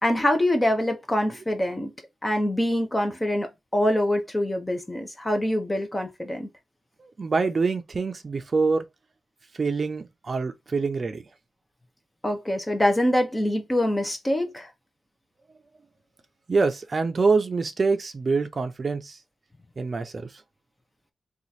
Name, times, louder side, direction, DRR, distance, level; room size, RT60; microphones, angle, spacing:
voice 1, 0.0-1.9 2.2-6.5 12.2-14.7, left 1 dB, 15° left, 0.8 m, -24 dB
voice 2, 7.2-8.8 9.6-11.2 16.5-19.1 19.8-20.2, right 4 dB, 40° right, 0.6 m, -25 dB
2.9 x 2.5 x 4.1 m
wide cardioid pair, 120°, 0 cm